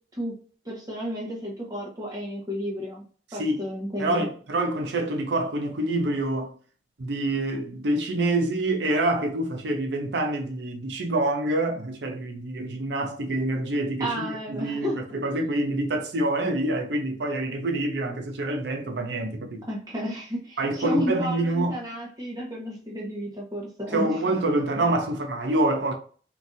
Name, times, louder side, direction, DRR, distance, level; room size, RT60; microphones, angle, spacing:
voice 1, 0.6-3.0 3.3-4.2 14.0-15.0 19.7-24.2, equal, 20° right, 1.0 m, -32 dB
voice 2, 4.0-6.5 7.0-19.6 20.6-21.8 23.9-25.9, right 1 dB, 80° right, 0.6 m, -26 dB
3.8 x 2.7 x 2.5 m
head